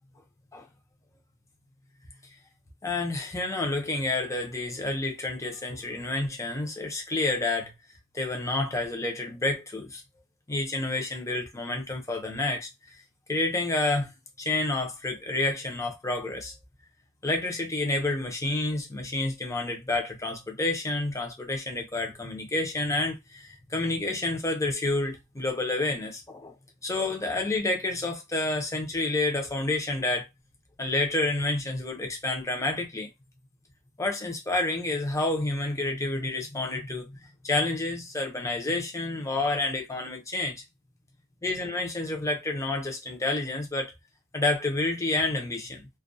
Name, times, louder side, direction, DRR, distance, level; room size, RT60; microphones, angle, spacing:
voice 1, 2.8-7.7 8.1-10.0 10.5-13.0 13.3-14.1 14.4-16.5 17.2-26.5 26.8-30.3 30.8-33.1 34.0-37.1 37.4-40.6 41.4-43.9 44.3-45.9, left 2 dB, 15° left, 0.6 m, -29 dB
2.3 x 2.2 x 2.6 m
head